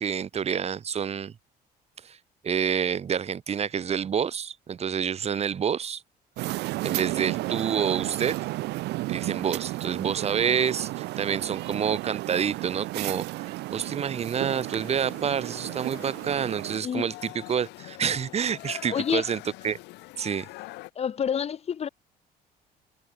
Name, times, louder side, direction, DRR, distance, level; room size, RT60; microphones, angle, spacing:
voice 1, 0.0-1.3 2.0-2.2 2.4-6.0 6.8-8.4 9.1-19.4 19.6-19.8 20.2-20.5, right 7 dB, 40° right, 1.4 m, -28 dB
sound 1, 6.4-16.8, right 19 dB, 85° right, 2.7 m, -33 dB
sound 2, 14.5-20.9, left 20 dB, 90° left, 1.2 m, -44 dB
voice 2, 18.9-19.2 21.0-21.9, left 8 dB, 40° left, 0.9 m, -28 dB
cardioid pair, 110°, 17 cm